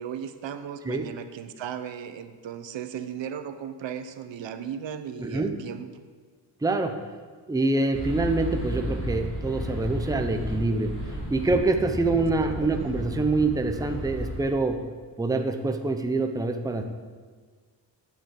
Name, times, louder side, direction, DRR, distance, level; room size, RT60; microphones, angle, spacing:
voice 1, 0.0-5.9 12.6-12.9, right 8 dB, 85° right, 10 dB, 1.0 m, -36 dB
voice 2, 5.2-5.5 6.6-6.9 7.5-10.9 11.3-14.8 15.2-16.8, right 2 dB, 10° right, 6 dB, 0.6 m, -25 dB
sound 1, 7.9-14.4, equal, 30° left, 3.1 m, -33 dB
9.3 x 8.1 x 8.4 m, 1.5 s
wide cardioid pair, 180°, 43 cm